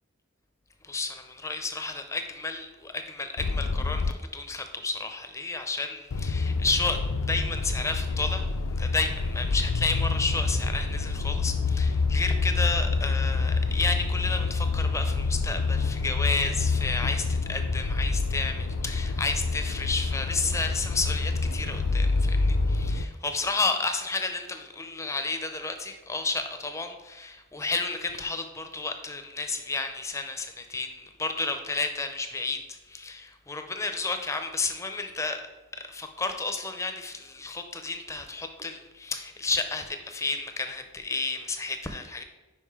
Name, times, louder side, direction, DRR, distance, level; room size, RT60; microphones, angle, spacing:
voice 1, 0.8-8.5 8.8-35.4 35.9-42.2, left 3 dB, 15° left, 6 dB, 0.5 m, -32 dB
sound 1, 3.4-4.1 6.1-23.1, left 3 dB, 65° left, 0.4 m, -27 dB
5.5 x 5.0 x 4.8 m, 1.2 s
head